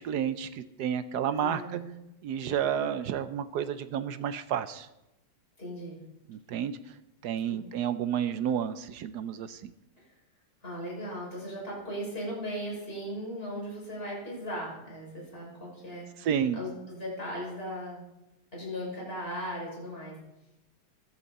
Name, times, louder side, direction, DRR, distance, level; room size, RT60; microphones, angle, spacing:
voice 1, 0.0-1.8 2.2-4.9 6.3-6.8 7.2-9.7 16.2-16.6, right 9 dB, 70° right, 11 dB, 1.0 m, -31 dB
voice 2, 1.4-2.0 5.6-6.0 7.5-7.7 10.6-16.1 16.5-18.0 18.5-20.2, equal, 25° left, -4 dB, 6.0 m, -37 dB
15.0 x 12.0 x 4.2 m, 0.90 s
omnidirectional pair, 2.4 m